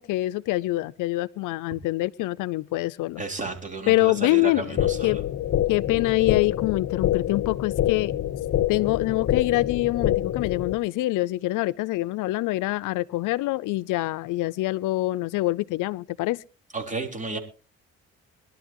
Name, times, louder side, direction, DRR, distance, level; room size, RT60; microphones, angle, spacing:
voice 1, 0.0-3.2 3.9-5.2 5.7-8.1 8.7-16.4, left 18 dB, 90° left, 0.6 m, -25 dB
voice 2, 3.2-5.2 16.7-17.4, right 3 dB, 25° right, 3.7 m, -32 dB
sound 1, 4.8-10.8, left 12 dB, 55° left, 0.8 m, -26 dB
22.0 x 12.0 x 3.0 m
cardioid pair, 90°, 30 cm